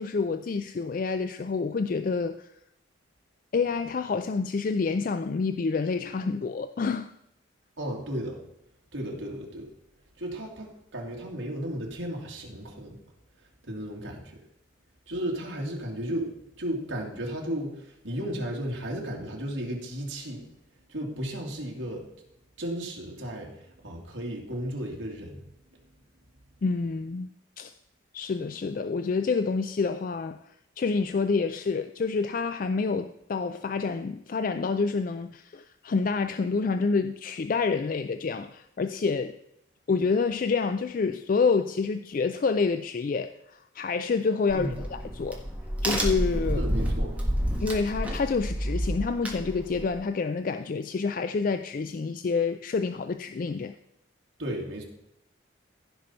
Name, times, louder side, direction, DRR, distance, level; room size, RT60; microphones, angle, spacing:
voice 1, 0.0-2.5 3.5-7.1 26.6-27.3 27.6-27.7 28.1-30.4 30.8-39.4 39.9-45.4 45.8-46.6 47.6-53.7, left 4 dB, 40° left, 10 dB, 0.3 m, -28 dB
voice 2, 7.8-8.4 8.9-9.7 10.2-13.0 13.6-14.4 15.1-20.5 20.9-22.1 22.6-25.5 44.5-44.8 46.5-47.2 54.4-54.8, equal, 70° right, -1 dB, 2.4 m, -34 dB
Crack, 44.5-49.9, equal, 5° right, 1.5 m, -29 dB
15.5 x 5.5 x 4.4 m, 0.80 s
head